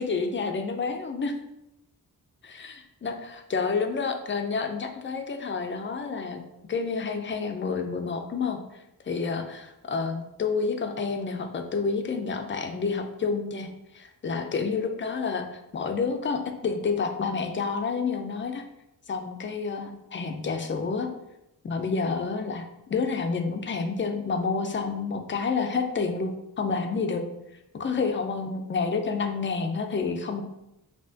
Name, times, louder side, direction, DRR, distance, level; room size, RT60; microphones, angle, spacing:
voice 1, 0.0-1.3 2.4-6.4 6.7-8.6 9.1-13.7 13.9-15.5 15.7-18.6 19.1-21.1 21.6-26.3 26.6-27.2 27.7-30.4, left 4 dB, 35° left, 6 dB, 0.5 m, -29 dB
5.5 x 2.8 x 2.7 m, 0.88 s
wide cardioid pair, 135°, 36 cm